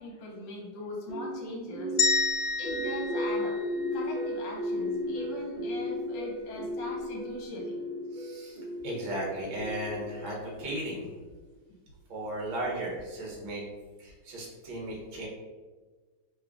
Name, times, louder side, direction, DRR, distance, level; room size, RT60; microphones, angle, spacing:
voice 1, 0.0-1.9 2.2-3.6 3.9-7.8, left 2 dB, 65° left, -2 dB, 1.6 m, -41 dB
sound 1, 1.1-11.2, left 1 dB, 50° right, 1.6 m, -35 dB
sound 2, 2.0-4.2, left 4 dB, 85° left, 1.4 m, -29 dB
voice 2, 8.1-11.1 12.1-13.6 14.0-15.3, right 1 dB, 75° right, -3 dB, 1.6 m, -36 dB
3.7 x 2.3 x 3.4 m, 1.4 s
omnidirectional pair, 2.2 m